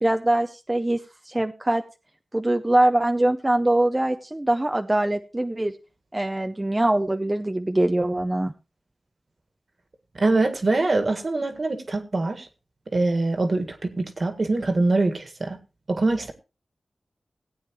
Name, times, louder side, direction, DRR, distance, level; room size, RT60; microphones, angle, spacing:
voice 1, 0.0-1.0 1.3-1.8 2.3-5.7 6.1-8.5, right 1 dB, 20° right, 6 dB, 0.7 m, -23 dB
voice 2, 10.2-12.5 12.9-15.6 15.9-16.3, right 2 dB, 55° right, 6 dB, 1.8 m, -23 dB
17.0 x 8.7 x 3.1 m, 0.29 s
wide cardioid pair, 65°, 0 cm